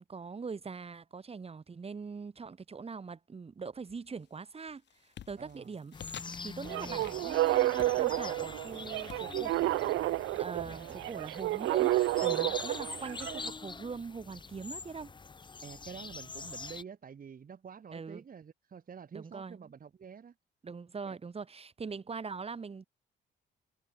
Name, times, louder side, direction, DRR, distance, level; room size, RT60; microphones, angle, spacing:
voice 1, 0.0-9.7 10.1-15.1 17.9-18.2 19.1-19.7 20.6-22.8, right 5 dB, 30° right, 1.6 m, -42 dB
sound 1, 3.8-4.3 4.7-11.3, left 10 dB, 65° left, 1.9 m, -53 dB
voice 2, 5.4-5.7 10.4-11.0 15.6-20.3 21.1-21.2, right 7 dB, 45° right, 2.7 m, -48 dB
sound 2, 5.9-16.8, left 4 dB, 25° left, 0.8 m, -44 dB
sound 3, 6.7-13.5, right 16 dB, 85° right, 0.8 m, -31 dB
cardioid pair, 90°, 20 cm